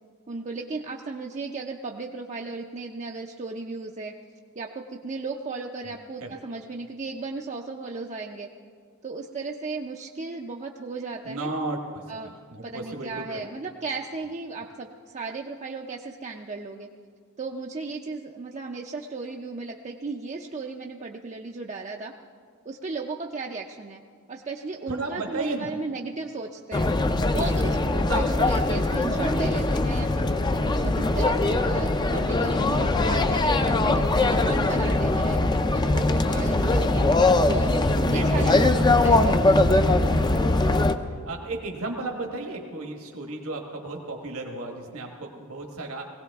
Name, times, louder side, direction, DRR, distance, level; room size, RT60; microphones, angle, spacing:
voice 1, 0.3-4.2 4.6-8.5 9.0-11.5 12.1-12.3 12.6-16.9 17.4-22.1 22.7-24.0 24.3-26.9 27.3-35.4 35.7-37.1 37.5-40.2, right 3 dB, 30° right, 1 dB, 0.5 m, -35 dB
voice 2, 11.2-13.5 24.9-25.7 27.3-27.4 28.1-28.2 38.1-38.9 41.3-46.0, right 2 dB, 70° right, 2 dB, 1.4 m, -34 dB
sound 1, 26.7-40.9, left 2 dB, 20° left, 0.4 m, -21 dB
20.0 x 17.0 x 3.5 m, 2.1 s
head